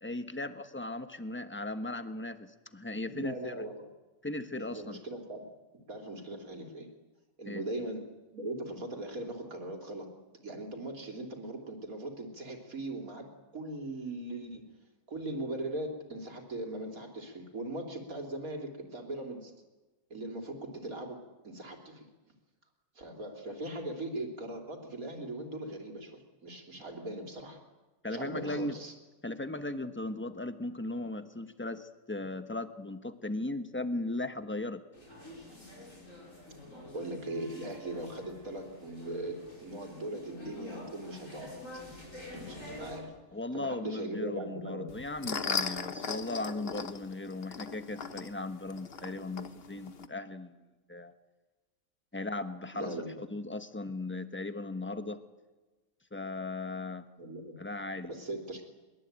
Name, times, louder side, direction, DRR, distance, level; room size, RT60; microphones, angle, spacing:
voice 1, 0.0-3.7 4.2-5.0 7.5-7.6 28.0-28.7 29.2-34.8 43.3-50.5 50.9-51.1 52.1-55.2 56.1-57.1 57.6-58.1, left 2 dB, 10° left, 9 dB, 1.1 m, -37 dB
voice 2, 3.0-3.9 4.6-5.5 5.9-6.9 7.4-10.1 10.4-13.3 13.5-14.7 15.1-19.5 20.1-22.1 23.0-27.6 28.1-28.9 36.9-41.6 42.5-43.1 43.5-45.0 52.7-53.2 57.2-57.6 58.1-58.6, right 1 dB, 75° right, 2 dB, 3.7 m, -39 dB
sound 1, 34.9-43.0, left 1 dB, 65° left, 7.4 m, -47 dB
sound 2, 44.9-50.1, left 5 dB, 45° left, 1.2 m, -38 dB
22.5 x 22.5 x 8.9 m, 1.2 s
omnidirectional pair, 1.5 m